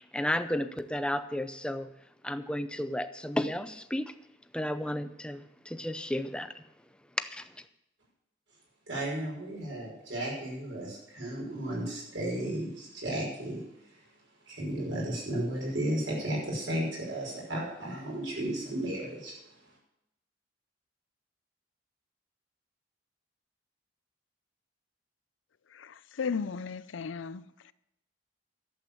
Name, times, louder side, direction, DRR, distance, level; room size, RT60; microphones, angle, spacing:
voice 1, 0.0-1.9 2.2-4.1 4.5-6.6 7.2-7.5, left 1 dB, 5° left, 0.5 m, -33 dB
voice 2, 8.9-13.6 14.5-19.4, right 1 dB, 80° right, 5.8 m, -34 dB
voice 3, 25.7-27.7, left 5 dB, 90° left, 0.5 m, -36 dB
12.0 x 7.9 x 7.0 m
head